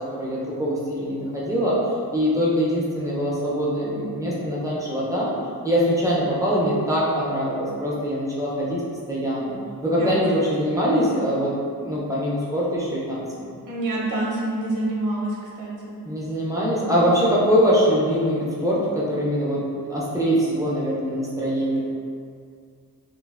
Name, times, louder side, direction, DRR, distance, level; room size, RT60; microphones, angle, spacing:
voice 1, 0.2-1.8 2.1-5.3 5.6-8.8 9.1-9.6 9.8-13.5 16.0-19.6 19.9-21.8, equal, 10° right, -7 dB, 0.4 m, -23 dB
voice 2, 13.7-16.0, right 1 dB, 55° right, -5 dB, 0.6 m, -27 dB
3.1 x 2.3 x 2.3 m, 2.2 s
wide cardioid pair, 175°, 38 cm